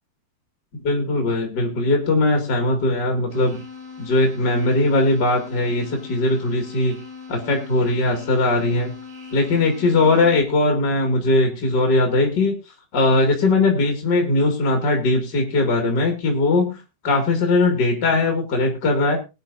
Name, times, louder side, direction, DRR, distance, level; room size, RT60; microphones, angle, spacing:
voice 1, 0.7-3.6 4.0-7.0 7.3-8.9 9.3-12.5 12.9-16.8 17.0-19.2, left 2 dB, 35° left, 2 dB, 2.0 m, -20 dB
sound 1, 3.3-10.4, left 5 dB, 70° right, 5.8 m, -39 dB
21.0 x 9.5 x 2.6 m, 0.28 s
omnidirectional pair, 5.1 m